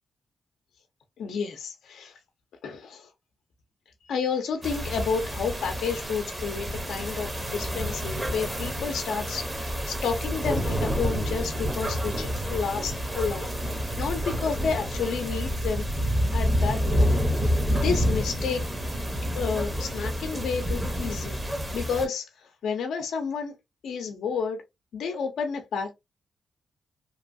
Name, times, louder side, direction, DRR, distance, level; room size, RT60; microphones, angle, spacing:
voice 1, 1.2-2.2 2.6-3.1 4.1-15.9 16.3-18.7 19.4-21.4 21.7-23.5 23.8-24.6 24.9-25.9, left 5 dB, 90° left, 0.5 m, -31 dB
sound 1, 4.6-22.1, equal, 20° right, 0.8 m, -28 dB
2.9 x 2.3 x 2.5 m
cardioid pair, 85°, 0 cm